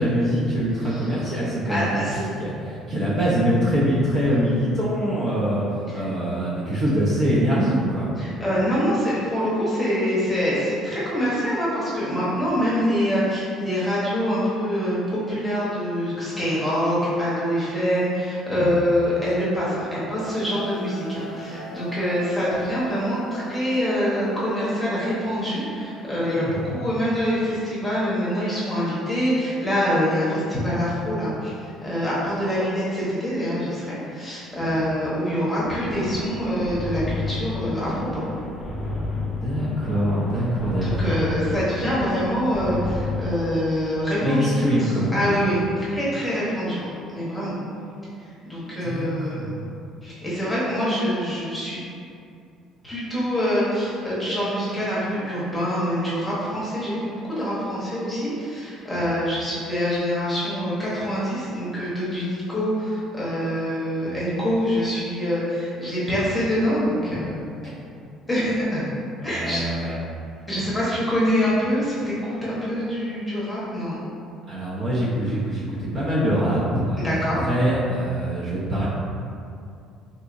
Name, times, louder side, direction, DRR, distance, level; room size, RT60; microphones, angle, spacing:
voice 1, 0.0-2.0 2.4-5.6 5.9-8.1 18.5-18.8 26.4-26.8 34.6-34.8 39.3-41.2 44.2-45.5 48.8-49.7 58.9-59.1 64.1-64.2 69.2-70.0 74.5-78.9, equal, 35° right, -7 dB, 0.5 m, -24 dB
voice 2, 1.6-2.2 5.9-6.0 8.2-38.2 40.8-44.5 44.8-47.6 48.5-49.4 50.0-51.8 52.8-67.4 68.3-68.9 69.2-69.6 70.5-74.0 77.0-77.4, equal, 5° left, -9 dB, 0.9 m, -25 dB
sound 1, 20.2-29.7, right 1 dB, 70° left, 0.6 m, -41 dB
sound 2, 35.6-43.5, left 2 dB, 20° left, 0.5 m, -30 dB
3.7 x 2.7 x 2.5 m, 2.5 s
cardioid pair, 150°, 0 cm